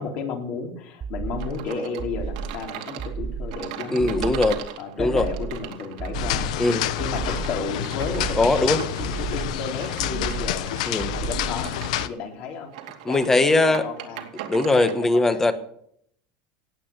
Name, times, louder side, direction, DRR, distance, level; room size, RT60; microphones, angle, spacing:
voice 1, 0.0-4.3 4.8-6.5 7.0-10.7 11.2-11.7 12.0-12.7 13.1-14.3 14.7-15.5, left 5 dB, 50° left, 2 dB, 3.7 m, -33 dB
sound 1, 1.0-1.6 2.0-2.6 3.0-3.6 4.0-4.6 5.0-5.6 6.0-6.6 7.0-7.6 8.0-8.6 9.0-9.6 10.0-10.6 11.0-11.6, right 5 dB, 25° right, 0.8 m, -32 dB
sound 2, 1.4-15.0, right 10 dB, 85° right, 2.5 m, -39 dB
voice 2, 3.9-4.6 5.0-5.2 6.6-6.9 8.4-8.8 10.9-11.2 13.0-13.8 14.5-15.5, left 2 dB, 10° left, 10 dB, 1.3 m, -20 dB
sound 3, 6.1-12.1, left 12 dB, 85° left, 1.0 m, -28 dB
18.0 x 8.6 x 6.7 m, 0.68 s
supercardioid pair, 150°, 4 cm